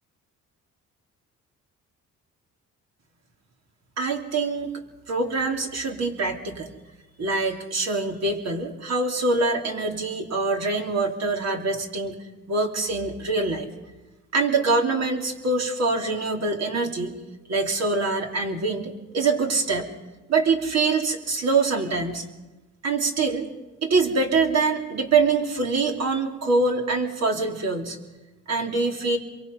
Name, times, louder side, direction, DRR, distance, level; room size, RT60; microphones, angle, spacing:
voice 1, 4.0-4.7 5.1-6.7 7.2-12.2 12.5-13.7 14.3-17.1 17.5-19.9 20.3-22.2 22.8-23.5 23.8-28.0 28.5-29.2, right 3 dB, 60° right, 2 dB, 3.2 m, -24 dB
27.0 x 23.0 x 5.4 m, 1.1 s
cardioid pair, 90°, 30 cm